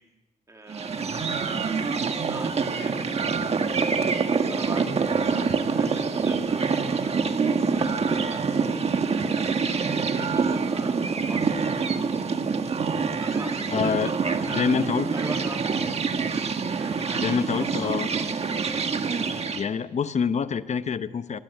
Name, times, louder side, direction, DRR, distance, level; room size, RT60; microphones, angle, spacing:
voice 1, 0.5-8.8 9.1-12.1 13.2-14.9 15.1-16.1 16.8-18.4, right 2 dB, 20° right, 2 dB, 2.7 m, -43 dB
sound 1, 0.7-19.7, right 5 dB, 45° right, 1.5 m, -26 dB
voice 2, 13.7-14.1 14.5-15.1 17.2-18.1 19.6-21.4, left 6 dB, 50° left, 12 dB, 0.9 m, -26 dB
25.0 x 20.0 x 9.2 m, 1.1 s
wide cardioid pair, 155°, 14 cm